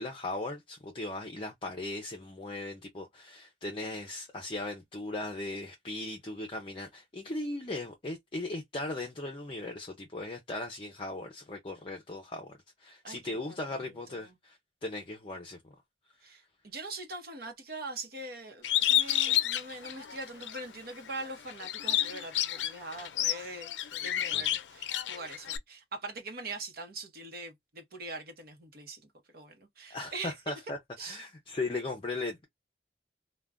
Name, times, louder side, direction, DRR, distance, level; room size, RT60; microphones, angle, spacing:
voice 1, 0.0-12.5 12.8-15.6 24.3-24.4 29.9-32.4, left 2 dB, 30° left, 0.5 m, -38 dB
voice 2, 13.0-14.3 16.2-29.0 29.3-30.3 31.0-31.2, right 2 dB, 60° right, 0.9 m, -42 dB
Bird, 18.6-20.6 21.1-25.6, left 12 dB, 90° left, 0.4 m, -30 dB
2.4 x 2.2 x 3.4 m
head